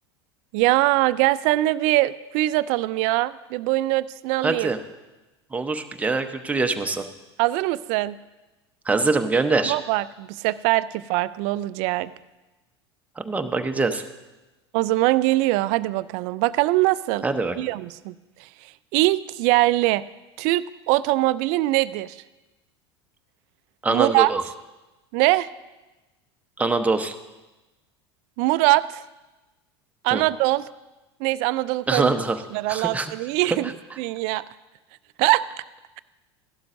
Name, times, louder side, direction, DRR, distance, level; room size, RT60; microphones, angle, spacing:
voice 1, 0.5-4.7 7.4-8.2 9.7-12.1 14.7-17.2 17.6-18.2 18.9-20.0 20.4-22.2 23.9-24.3 25.1-25.5 28.4-29.0 30.0-30.7 31.2-32.1 32.5-33.7 34.0-34.4 35.2-35.5, right 18 dB, 55° right, 17 dB, 0.4 m, -22 dB
voice 2, 4.4-4.8 5.5-7.0 8.9-9.7 13.2-14.0 17.2-17.6 23.8-24.4 26.6-27.1 30.1-30.2 31.9-32.4 32.7-33.1 33.5-33.6, right 3 dB, 10° right, 6 dB, 0.9 m, -23 dB
15.5 x 12.0 x 2.6 m, 1.1 s
hypercardioid pair, 85°, 14 cm